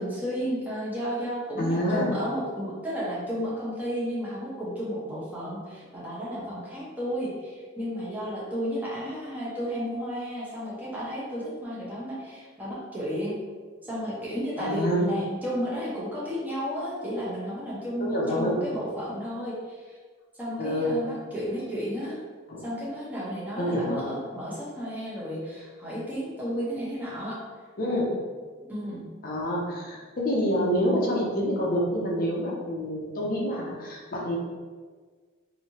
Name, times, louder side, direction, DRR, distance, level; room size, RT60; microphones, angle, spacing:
voice 1, 0.0-13.4 13.8-20.0 20.4-22.2 22.6-27.4 28.7-29.0, equal, 10° right, -7 dB, 0.8 m, -32 dB
voice 2, 1.6-2.1 14.6-15.1 18.0-18.6 20.6-20.9 22.5-22.6 23.6-24.1 27.8-28.1 29.2-34.4, equal, 45° left, -3 dB, 0.6 m, -27 dB
3.1 x 2.7 x 2.8 m, 1.5 s
head